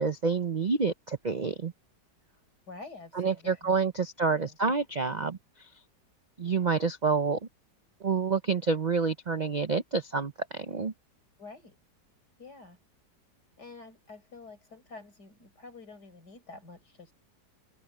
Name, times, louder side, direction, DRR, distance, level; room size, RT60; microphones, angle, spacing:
voice 1, 0.0-1.7 3.1-5.7 6.4-7.4 8.0-10.9, right 4 dB, 75° right, 0.4 m, -28 dB
voice 2, 2.7-4.6 11.4-11.8 12.4-12.8 13.6-17.1, left 3 dB, 65° left, 5.2 m, -48 dB
open air
omnidirectional pair, 1.9 m